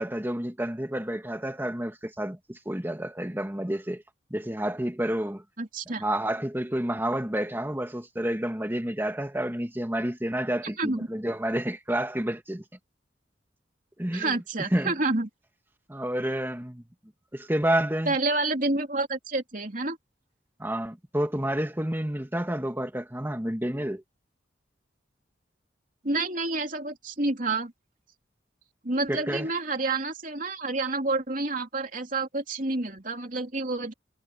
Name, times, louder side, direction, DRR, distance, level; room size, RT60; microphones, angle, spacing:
voice 1, 0.0-4.0 4.3-5.4 6.0-12.6 14.0-14.3 14.7-14.9 15.9-16.8 17.3-18.2 20.6-24.0 29.1-29.5, right 1 dB, 10° right, 1.5 m, -29 dB
voice 2, 5.6-6.0 10.8-11.1 14.1-15.3 18.1-20.0 26.0-27.7 28.8-33.9, right 2 dB, 45° right, 3.3 m, -29 dB
head